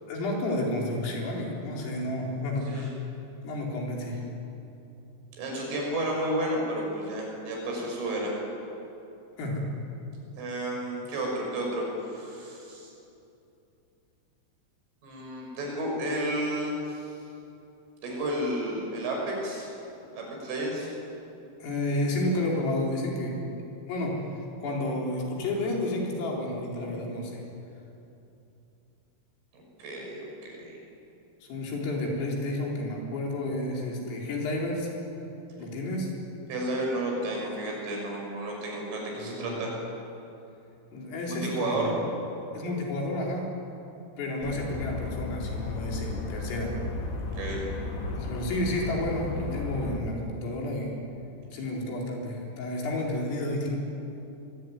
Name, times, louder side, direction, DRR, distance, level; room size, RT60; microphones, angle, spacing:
voice 1, 0.1-3.0 3.4-4.2 9.4-9.7 21.6-23.4 23.9-24.2 24.6-27.4 31.5-34.9 35.6-36.1 39.2-39.5 40.9-41.9 42.5-43.5 44.2-46.8 48.2-50.9 51.5-53.8, left 1 dB, 75° left, -1 dB, 6.9 m, -31 dB
voice 2, 5.4-8.4 10.4-12.9 15.0-17.0 18.0-19.7 20.1-20.9 29.5-30.7 36.5-39.7 41.2-41.9 47.4-47.6, right 1 dB, 70° right, -1 dB, 9.0 m, -32 dB
sound 1, 44.4-50.0, left 3 dB, 45° left, 1.6 m, -34 dB
24.0 x 23.5 x 9.8 m, 2.8 s
omnidirectional pair, 6.0 m